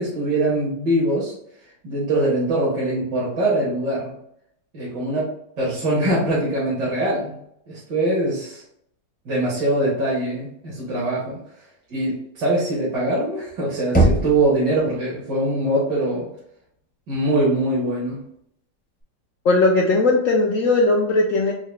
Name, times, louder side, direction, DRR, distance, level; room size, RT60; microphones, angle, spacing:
voice 1, 0.0-1.3 1.8-4.1 4.7-7.4 7.7-8.6 9.3-11.4 11.9-16.3 17.1-18.2, right 1 dB, 75° right, -7 dB, 1.8 m, -22 dB
Knock, 13.9-14.9, right 2 dB, 15° left, 0.3 m, -20 dB
voice 2, 19.4-21.5, left 2 dB, 75° left, -1 dB, 0.7 m, -18 dB
4.7 x 2.2 x 3.2 m, 0.72 s
omnidirectional pair, 1.9 m